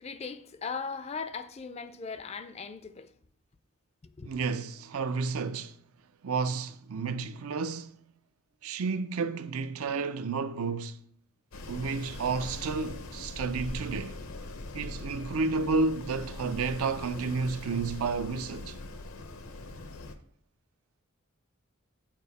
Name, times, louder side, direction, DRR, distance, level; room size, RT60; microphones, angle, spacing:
voice 1, 0.0-3.1 4.2-4.3, left 5 dB, 30° left, 0.4 m, -38 dB
voice 2, 4.3-5.8 6.2-8.0 8.6-11.0 11.7-14.2 14.7-18.8, right 4 dB, 80° right, 0.5 m, -31 dB
Wind, 11.5-20.2, left 2 dB, 75° left, 0.7 m, -41 dB
7.6 x 4.8 x 4.1 m
head